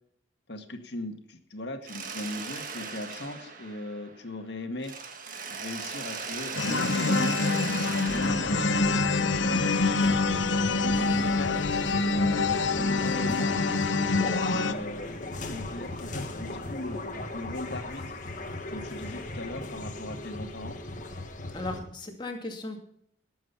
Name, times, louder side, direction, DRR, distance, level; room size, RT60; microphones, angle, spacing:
voice 1, 0.5-4.9 5.5-10.2 10.8-11.6 12.1-15.2 15.5-17.0 17.3-18.2 18.7-20.8, left 1 dB, 60° left, 5 dB, 1.9 m, -38 dB
Mechanisms, 1.8-4.4 4.8-9.7, right 5 dB, 45° right, 1.6 m, -38 dB
sound 1, 6.5-14.7, left 3 dB, 80° left, 0.9 m, -26 dB
sound 2, 8.1-21.8, left 2 dB, 40° left, 1.6 m, -37 dB
voice 2, 21.5-22.8, left 2 dB, 25° left, 3 dB, 2.3 m, -36 dB
18.5 x 7.8 x 5.7 m, 0.67 s
head